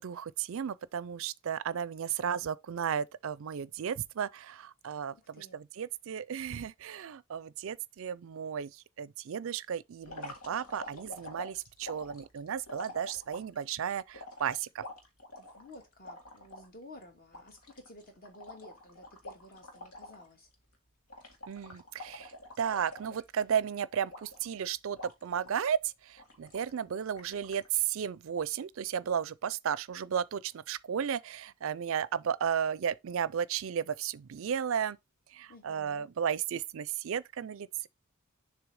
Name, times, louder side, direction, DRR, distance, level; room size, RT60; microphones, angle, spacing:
voice 1, 0.0-14.8 21.5-22.3 22.6-35.0 35.3-37.9, right 8 dB, 60° right, 0.4 m, -34 dB
voice 2, 5.1-5.6 15.3-20.5 35.5-36.1, left 1 dB, 40° left, 1.9 m, -53 dB
sound 1, 10.0-13.6 14.1-16.7 17.0-17.1 17.3-20.3 20.5-20.8 21.1-23.6 24.1-24.6 25.0-25.7 26.2-26.8 27.2-27.7, left 1 dB, 90° left, 1.9 m, -47 dB
7.1 x 3.2 x 4.8 m
head